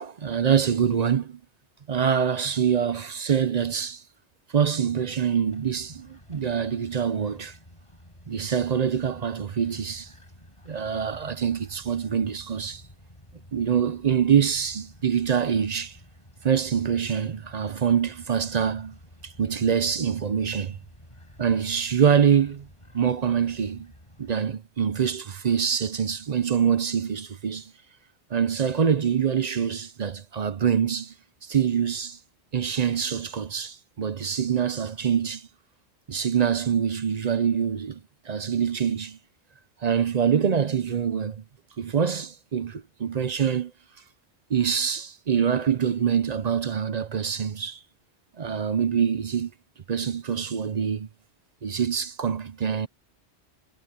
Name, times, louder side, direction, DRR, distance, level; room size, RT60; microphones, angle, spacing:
voice 1, 0.0-1.4 1.9-4.0 4.5-7.5 8.3-10.1 10.7-12.8 13.5-15.9 16.4-19.0 19.2-20.8 21.4-22.7 22.9-23.9 24.2-27.7 28.3-31.1 31.5-32.2 32.5-35.5 36.1-38.0 38.3-39.2 39.8-41.4 41.8-43.7 44.5-47.8 48.4-49.5 49.9-51.1 51.6-52.9, right 7 dB, 45° right, 0.6 m, -25 dB
sound 1, 5.5-24.3, equal, 25° left, 7.9 m, -51 dB
omnidirectional pair, 1.2 m